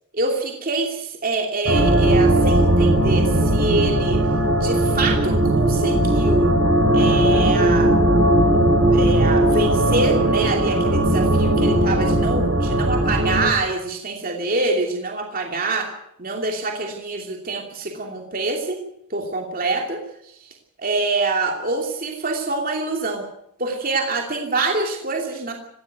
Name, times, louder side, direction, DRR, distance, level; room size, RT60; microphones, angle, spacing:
voice 1, 0.1-4.2 4.5-6.5 6.9-7.9 8.8-15.9 16.2-20.0 20.2-23.3 23.6-25.5, right 3 dB, 40° right, 2 dB, 2.8 m, -25 dB
sound 1, 1.7-13.5, right 1 dB, 75° right, 4.1 m, -18 dB
18.5 x 15.5 x 9.3 m, 0.76 s
head